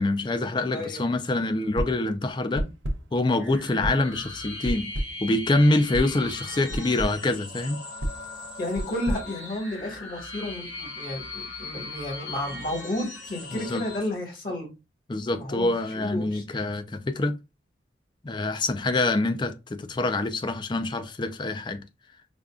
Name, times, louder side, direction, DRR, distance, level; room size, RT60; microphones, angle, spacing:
voice 1, 0.0-2.7 3.1-4.9 5.2-7.8 13.5-13.8 15.1-17.4 18.2-21.8, left 2 dB, 25° left, 0.4 m, -25 dB
voice 2, 0.7-1.0 3.7-3.9 8.6-14.7 15.3-16.4, left 1 dB, 50° left, 1.5 m, -32 dB
sound 1, 1.8-2.1 2.6-3.2 3.8-4.2 4.6-5.3 5.9-6.2 6.7-7.2 8.0-10.1, equal, 85° right, 0.6 m, -32 dB
sound 2, 3.3-14.0, left 3 dB, 85° left, 2.1 m, -39 dB
5.0 x 2.3 x 2.3 m
head